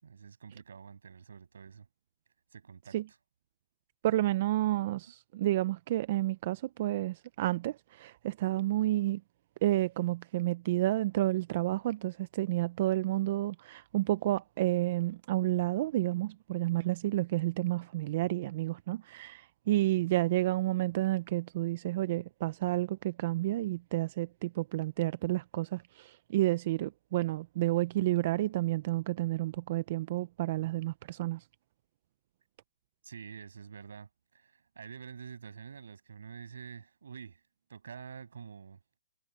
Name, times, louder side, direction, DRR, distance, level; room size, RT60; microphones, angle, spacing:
voice 1, 0.0-1.9 2.5-3.0 33.0-37.4 37.7-39.0, right 6 dB, 80° right, 6.9 m, -47 dB
voice 2, 4.0-9.2 9.6-31.4, right 16 dB, 35° right, 0.6 m, -30 dB
hypercardioid pair, 165°, 0 cm